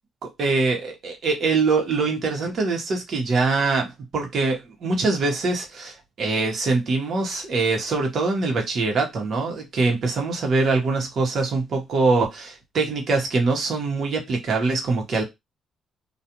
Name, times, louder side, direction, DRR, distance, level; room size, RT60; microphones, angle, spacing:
voice 1, 0.2-15.2, right 3 dB, 60° right, 1.1 m, -23 dB
2.4 x 2.4 x 2.9 m
cardioid pair, 90°, 0 cm